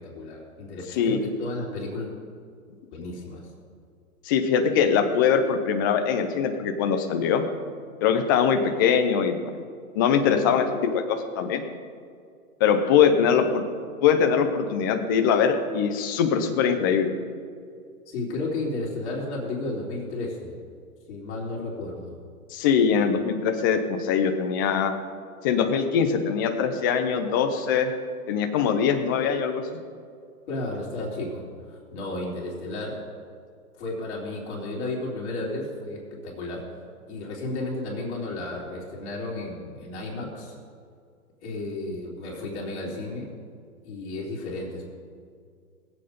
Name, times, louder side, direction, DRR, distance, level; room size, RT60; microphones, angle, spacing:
voice 1, 0.0-2.1 2.9-3.4 18.1-20.5 21.1-22.1 30.5-33.0 33.8-36.7 37.1-40.6 41.4-43.3 43.8-44.8, left 2 dB, 45° left, -3 dB, 3.6 m, -33 dB
voice 2, 4.2-7.4 8.0-9.4 9.9-11.6 12.6-13.6 14.0-17.1 22.5-24.9 25.4-27.9 28.3-29.8, left 7 dB, 15° left, 6 dB, 0.5 m, -22 dB
20.0 x 8.0 x 5.1 m, 2.2 s
hypercardioid pair, 140°, 45 cm